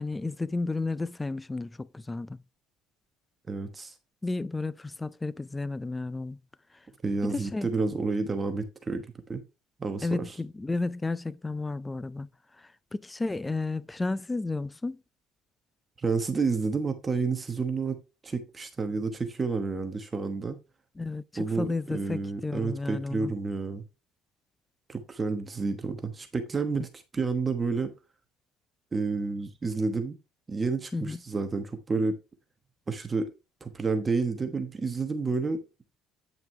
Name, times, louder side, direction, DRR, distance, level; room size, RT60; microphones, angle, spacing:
voice 1, 0.0-2.4 4.2-6.4 7.2-7.7 10.0-12.3 12.9-15.0 21.0-23.3 30.9-31.2, left 3 dB, 10° left, 0.4 m, -32 dB
voice 2, 3.5-3.9 7.0-9.4 9.8-10.4 16.0-18.0 18.2-20.6 21.4-23.8 24.9-27.9 28.9-30.2 30.5-32.2 32.9-33.3 33.6-35.6, right 4 dB, 20° right, 1.1 m, -30 dB
9.2 x 5.8 x 3.2 m
cardioid pair, 125°, 0 cm